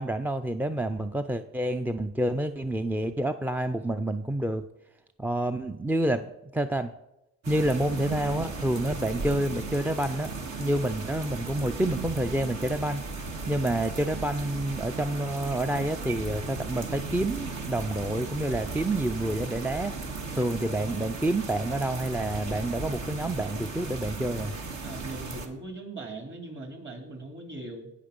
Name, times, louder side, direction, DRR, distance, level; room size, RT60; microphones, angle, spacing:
voice 1, 0.0-4.7 5.2-6.3 6.5-6.9 7.5-10.3 10.6-13.0 13.5-19.9 20.3-24.5, right 1 dB, 5° right, 9 dB, 0.4 m, -28 dB
sound 1, 7.4-25.5, right 3 dB, 65° right, 1.8 m, -36 dB
voice 2, 24.8-27.9, right 2 dB, 40° right, 4 dB, 3.2 m, -40 dB
17.5 x 5.9 x 5.2 m, 0.90 s
cardioid pair, 90°, 30 cm